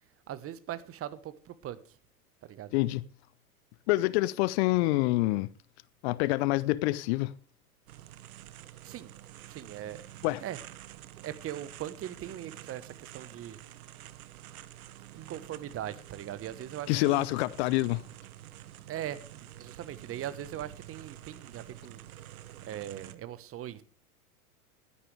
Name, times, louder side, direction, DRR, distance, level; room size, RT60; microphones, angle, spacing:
voice 1, 0.3-2.0 2.4-2.7 8.8-9.1 9.5-10.0 10.4-10.6 11.2-13.6 15.1-17.3 18.9-22.0 22.7-23.8, right 11 dB, 30° right, 1.2 m, -40 dB
voice 2, 2.7-3.0 3.9-5.5 6.0-7.3 10.2-10.4 16.9-18.0, left 19 dB, 45° left, 0.6 m, -26 dB
sound 1, 7.9-23.2, right 13 dB, 70° right, 1.2 m, -48 dB
16.0 x 12.5 x 3.4 m
hypercardioid pair, 95°, 45 cm